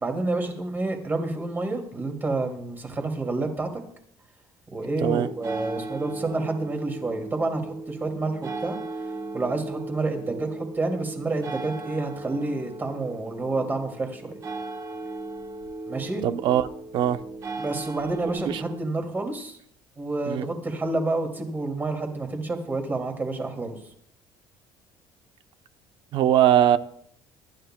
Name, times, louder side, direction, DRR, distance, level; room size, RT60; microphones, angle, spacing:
voice 1, 0.0-3.7 4.7-8.8 9.3-14.3 15.9-16.2 17.6-19.6 20.0-23.9, right 2 dB, 20° right, 2.3 m, -29 dB
sound 1, 5.2-18.8, right 3 dB, 35° right, 1.1 m, -37 dB
voice 2, 16.2-17.2 18.5-18.6 20.3-20.4 26.1-26.8, right 11 dB, 60° right, 0.7 m, -21 dB
24.0 x 11.5 x 2.2 m
cardioid pair, 140°, 9 cm